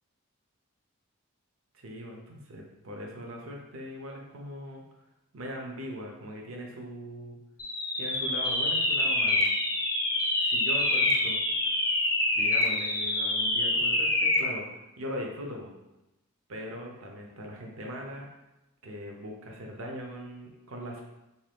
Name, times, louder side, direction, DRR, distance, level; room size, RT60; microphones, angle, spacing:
voice 1, 1.7-4.8 5.3-7.4 7.9-9.5 10.4-11.4 12.3-14.6 15.0-15.7 16.5-18.3 18.8-21.0, equal, 70° right, 1 dB, 0.6 m, -40 dB
sound 1, 7.6-14.5, left 2 dB, 15° left, 0.3 m, -26 dB
3.0 x 2.7 x 3.4 m, 0.96 s
head